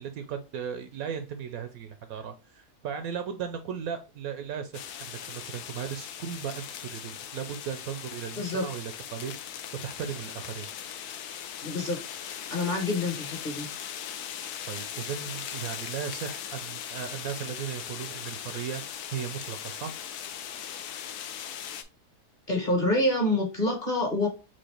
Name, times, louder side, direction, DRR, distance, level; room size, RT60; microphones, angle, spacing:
voice 1, 0.0-10.7 14.7-19.9, right 8 dB, 70° right, 8 dB, 0.9 m, -36 dB
sound 1, 4.7-21.8, left 9 dB, 75° left, 1.1 m, -39 dB
voice 2, 11.6-12.0 12.5-13.7 22.5-24.3, left 1 dB, 35° left, 0 dB, 1.0 m, -27 dB
4.5 x 2.5 x 4.3 m, 0.30 s
omnidirectional pair, 1.7 m